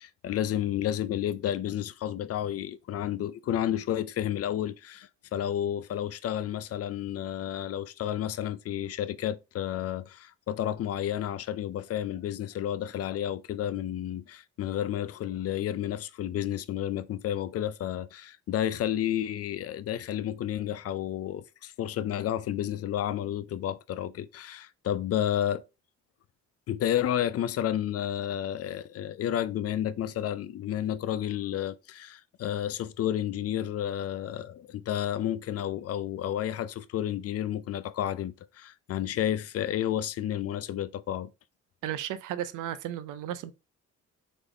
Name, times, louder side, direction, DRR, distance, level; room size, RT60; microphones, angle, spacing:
voice 1, 0.0-25.6 26.7-41.3, left 11 dB, 55° left, 0.5 m, -31 dB
voice 2, 41.8-43.5, right 11 dB, 85° right, 0.6 m, -34 dB
4.0 x 3.4 x 3.3 m
cardioid pair, 90°, 30 cm